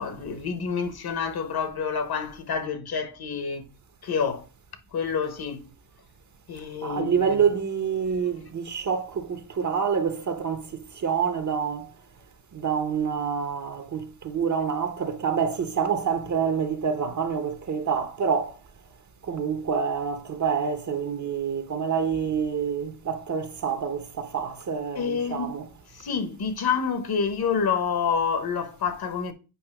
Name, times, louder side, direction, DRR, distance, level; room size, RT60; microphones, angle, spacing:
voice 1, 0.0-3.6 4.0-4.5 4.9-5.7 6.5-7.5 24.9-25.6 25.9-29.3, left 6 dB, 50° left, 1.3 m, -28 dB
voice 2, 6.8-10.7 10.9-11.9 12.5-18.5 19.2-25.7, right 6 dB, 35° right, 1.0 m, -27 dB
8.3 x 2.8 x 6.0 m
cardioid pair, 125°, 48 cm